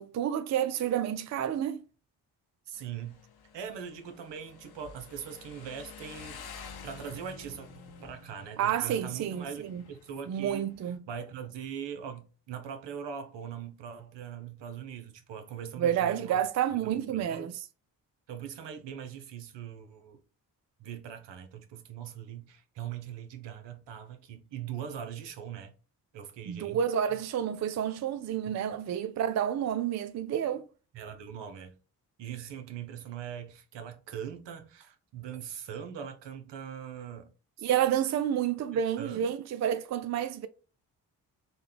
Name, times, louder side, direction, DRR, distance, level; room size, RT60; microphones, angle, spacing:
voice 1, 0.0-1.8 8.6-9.8 10.3-11.0 15.8-17.5 26.5-30.6 37.6-40.5, right 9 dB, 40° right, 0.4 m, -29 dB
Motorcycle, 2.7-11.0, left 5 dB, 55° left, 0.8 m, -49 dB
voice 2, 2.7-3.2 3.5-7.7 8.0-16.4 16.8-17.5 18.3-20.2 20.8-25.7 26.1-26.8 27.1-27.2 28.5-28.6 30.9-31.8 32.2-37.3 37.6-37.7 38.7-39.3, right 8 dB, 65° right, 0.8 m, -41 dB
4.0 x 2.2 x 3.3 m
hypercardioid pair, 40°, 46 cm